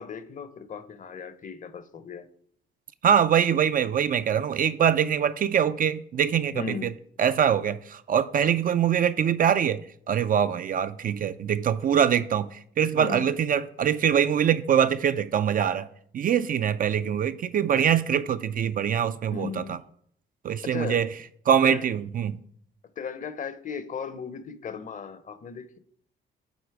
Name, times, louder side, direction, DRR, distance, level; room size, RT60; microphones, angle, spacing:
voice 1, 0.0-2.3 6.5-6.9 13.0-13.3 19.3-19.8 20.6-21.0 21.6-21.9 23.0-25.8, left 6 dB, 40° left, 0.7 m, -36 dB
voice 2, 3.0-6.9 7.2-15.9 16.1-19.8 20.4-21.1 21.5-22.4, right 8 dB, 45° right, 0.4 m, -23 dB
8.1 x 4.1 x 4.7 m
cardioid pair, 90°, 20 cm